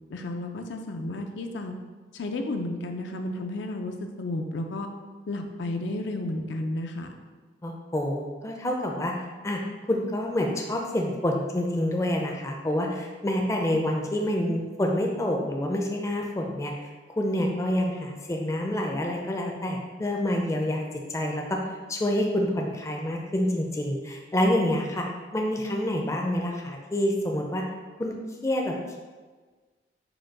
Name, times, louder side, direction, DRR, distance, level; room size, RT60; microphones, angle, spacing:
voice 1, 0.1-1.7 2.1-4.9 5.3-7.2, left 2 dB, 80° left, 4 dB, 0.5 m, -32 dB
voice 2, 7.6-9.1 9.4-9.6 9.9-16.7 17.2-20.8 21.1-21.6 21.9-25.0 25.3-27.6 28.0-28.1 28.4-29.0, left 1 dB, 15° left, 1 dB, 0.4 m, -27 dB
5.0 x 2.2 x 4.6 m, 1.4 s
head